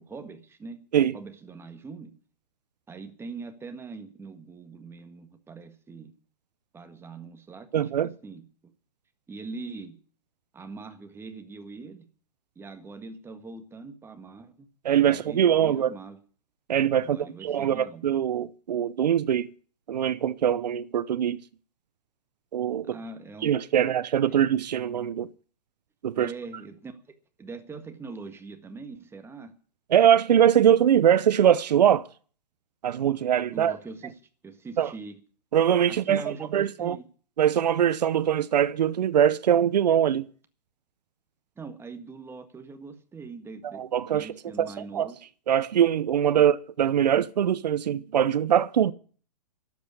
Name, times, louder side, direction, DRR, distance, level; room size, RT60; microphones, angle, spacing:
voice 1, 0.0-0.8 1.1-2.1 2.9-6.1 6.7-8.4 9.3-10.0 10.5-12.1 12.5-14.7 15.1-16.2 17.0-18.0 22.8-23.8 26.2-26.9 27.4-29.5 33.5-35.2 35.9-37.0 41.6-43.8 44.1-45.2, right 4 dB, 10° right, 1.7 m, -42 dB
voice 2, 7.7-8.1 14.8-15.9 16.7-19.5 19.9-21.4 22.5-23.0 23.4-25.3 26.0-26.3 29.9-32.0 32.8-33.8 34.8-34.9 35.5-36.2 36.5-37.0 37.4-40.2 43.7-44.3 44.6-45.1 45.5-48.9, right 9 dB, 80° right, 0.8 m, -22 dB
12.0 x 8.4 x 9.9 m
hypercardioid pair, 130°, 21 cm